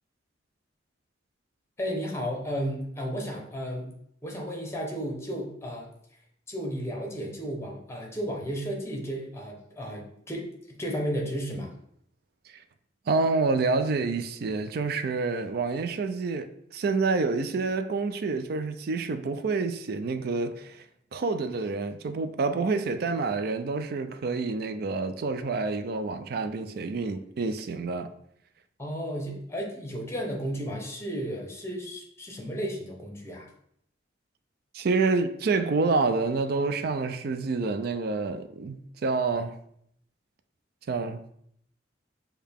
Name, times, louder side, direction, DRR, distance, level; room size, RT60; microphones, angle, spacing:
voice 1, 1.8-3.9 4.2-5.9 6.5-11.7 28.8-33.5, equal, 15° left, 0.9 m, -33 dB
voice 2, 13.1-20.8 21.1-28.1 34.7-39.6 40.9-41.2, right 4 dB, 55° right, 0.4 m, -28 dB
6.5 x 2.3 x 3.5 m
head